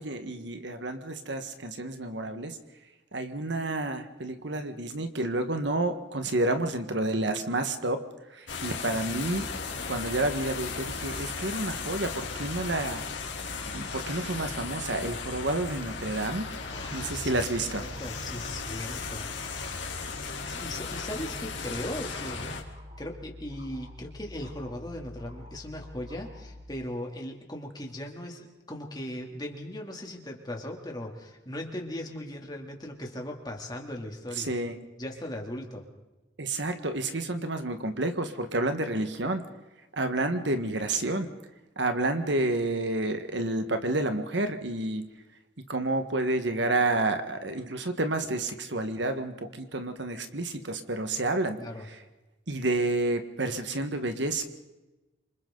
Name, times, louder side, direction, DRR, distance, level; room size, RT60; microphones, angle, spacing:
voice 1, 0.0-2.6 3.1-9.5 9.9-13.2 13.7-16.5 16.9-17.9 34.3-34.7 36.4-39.4 39.9-41.3 41.7-45.0 45.7-51.6 51.8-52.0 52.5-54.4, right 2 dB, 70° right, 7 dB, 1.5 m, -30 dB
sound 1, 8.5-22.6, left 5 dB, 75° left, 3.1 m, -36 dB
sound 2, 9.1-26.6, left 1 dB, 35° right, 6.7 m, -46 dB
voice 2, 16.7-19.3 19.6-22.5 23.0-34.5 35.0-35.9 51.6-51.9, left 1 dB, 20° left, 1 dB, 2.9 m, -38 dB
28.0 x 26.0 x 4.0 m, 1.1 s
head